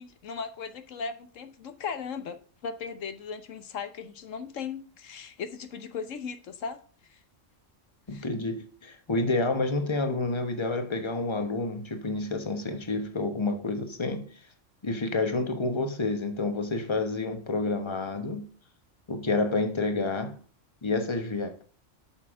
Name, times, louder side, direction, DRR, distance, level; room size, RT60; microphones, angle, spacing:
voice 1, 0.0-7.2 8.1-8.3, left 6 dB, 85° left, 1.3 m, -38 dB
voice 2, 8.1-14.3 14.8-18.5 19.1-20.4 20.8-21.6, left 3 dB, 25° left, 1.1 m, -29 dB
8.7 x 6.5 x 3.7 m
omnidirectional pair, 1.3 m